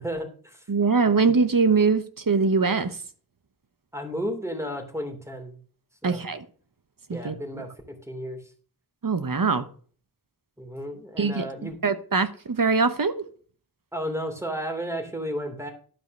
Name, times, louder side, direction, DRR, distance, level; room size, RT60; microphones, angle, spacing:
voice 1, 0.0-0.6 3.9-5.6 6.0-6.3 7.1-8.4 10.6-11.8 13.9-15.7, equal, 5° right, 2.8 m, -33 dB
voice 2, 0.7-3.0 6.0-6.4 7.1-7.6 9.0-9.7 11.2-13.2, right 4 dB, 65° right, 1.1 m, -23 dB
12.0 x 5.1 x 6.5 m
wide cardioid pair, 55°, 37 cm